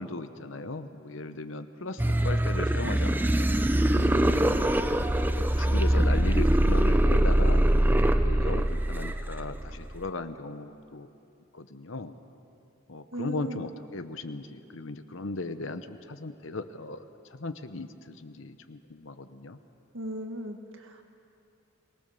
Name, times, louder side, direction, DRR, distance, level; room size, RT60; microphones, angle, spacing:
voice 1, 0.0-4.1 4.9-5.0 5.3-11.1 11.5-12.1 12.9-17.0 17.3-19.6, left 3 dB, 80° left, 10 dB, 1.0 m, -37 dB
sound 1, 2.0-10.0, right 1 dB, 10° right, 0.5 m, -23 dB
voice 2, 3.9-4.7 13.1-13.6 19.9-21.0, right 1 dB, 80° right, 4 dB, 1.9 m, -37 dB
23.0 x 18.5 x 7.0 m, 2.7 s
head